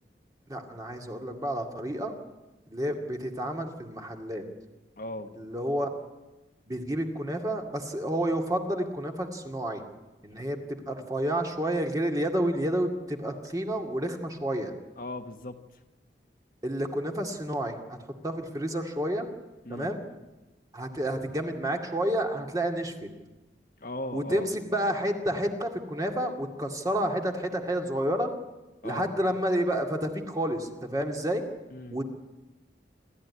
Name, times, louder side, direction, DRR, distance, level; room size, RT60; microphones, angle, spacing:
voice 1, 0.5-2.1 2.7-4.4 5.4-5.9 6.7-9.8 10.2-14.7 16.6-17.8 18.2-19.3 19.7-20.0 20.7-23.1 24.1-28.3 28.8-31.4 31.9-32.0, right 1 dB, 20° right, 2 dB, 2.2 m, -30 dB
voice 2, 5.0-5.3 15.0-15.6 19.6-19.9 23.8-24.5 28.8-29.1 31.7-32.0, left 1 dB, 50° left, 6 dB, 1.4 m, -37 dB
28.5 x 13.5 x 9.7 m, 1.1 s
head